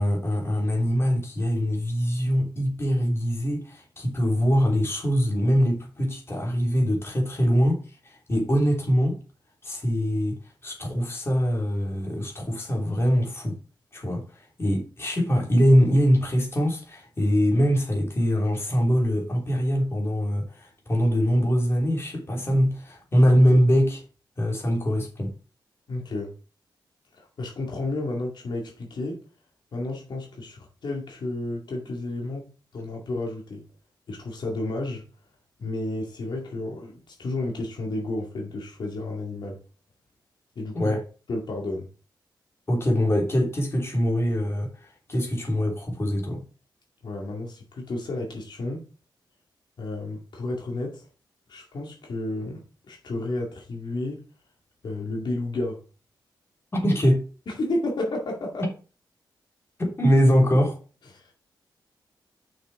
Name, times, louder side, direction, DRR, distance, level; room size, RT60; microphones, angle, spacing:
voice 1, 0.0-9.2 9.6-13.6 13.9-24.0 24.4-25.3 40.7-41.0 42.7-46.4 56.7-57.2 59.8-60.8, equal, 30° left, 3.2 m, -23 dB
voice 2, 25.9-26.3 27.1-29.2 29.7-32.5 32.7-33.6 34.1-35.0 35.6-39.6 40.6-40.9 41.3-41.9 47.0-48.9 49.8-51.0 51.5-54.2 54.8-55.8 57.5-58.7 61.1-61.3, left 2 dB, 70° left, 2.1 m, -32 dB
6.5 x 6.2 x 4.7 m
wide cardioid pair, 105°, 8 cm